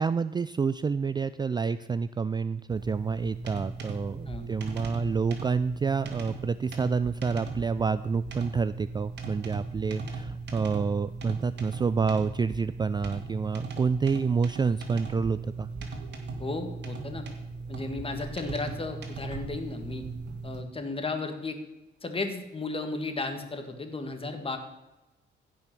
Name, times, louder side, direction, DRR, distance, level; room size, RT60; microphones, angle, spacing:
voice 1, 0.0-15.7, right 5 dB, 20° right, 14 dB, 0.3 m, -28 dB
sound 1, 2.7-20.6, right 3 dB, 60° right, 2.3 m, -38 dB
voice 2, 16.4-17.2 17.7-20.0 20.4-21.6 22.0-24.6, left 3 dB, 30° left, 6 dB, 1.9 m, -34 dB
15.5 x 5.7 x 6.1 m, 1.0 s
cardioid pair, 90°, 20 cm